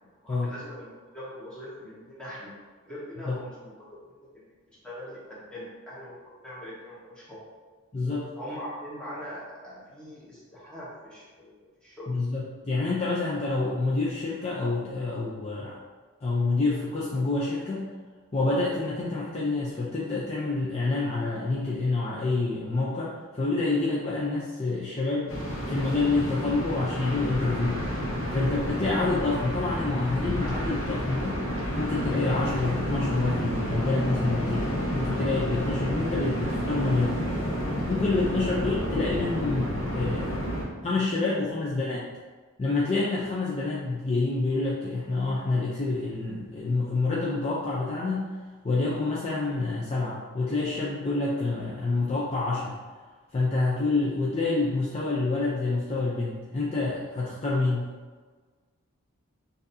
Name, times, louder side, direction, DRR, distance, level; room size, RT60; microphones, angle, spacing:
voice 1, 0.2-2.5 2.8-7.4 8.4-12.2, equal, 5° left, -9 dB, 1.2 m, -42 dB
voice 2, 7.9-8.3 12.1-15.8 16.2-17.9 18.3-25.4 25.6-27.9 28.3-31.5 31.8-37.2 37.9-40.3 40.8-42.0 42.6-48.3 48.6-52.8 53.3-57.9, left 3 dB, 30° left, -6 dB, 0.5 m, -27 dB
sound 1, 25.3-40.6, equal, 65° left, 1.0 m, -30 dB
6.2 x 2.7 x 2.7 m, 1.4 s
head